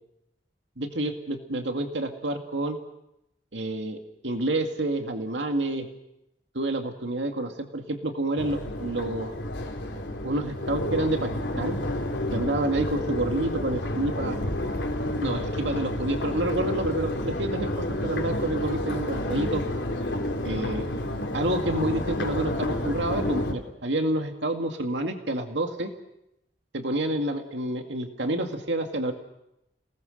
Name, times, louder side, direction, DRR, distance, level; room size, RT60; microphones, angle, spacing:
voice 1, 0.8-2.8 3.5-5.9 6.5-9.3 10.2-11.3 11.6-11.8 12.3-14.4 15.2-17.7 18.0-19.6 20.4-20.9 21.3-25.9 26.7-29.1, right 1 dB, 85° right, 4 dB, 2.2 m, -28 dB
Crowd, 8.4-23.5, left 1 dB, 85° left, 3.4 m, -30 dB
29.5 x 19.5 x 6.6 m, 0.85 s
head